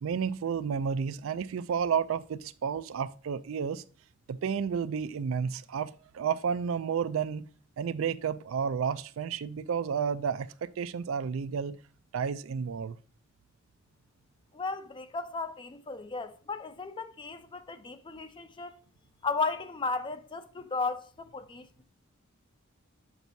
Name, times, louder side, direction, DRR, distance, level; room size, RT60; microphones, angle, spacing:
voice 1, 0.0-3.8 4.3-7.5 7.8-11.8 12.1-13.0, right 6 dB, 75° right, 0.4 m, -31 dB
voice 2, 14.5-18.8 19.2-21.7, left 4 dB, 25° left, 0.4 m, -35 dB
7.1 x 5.9 x 2.7 m
head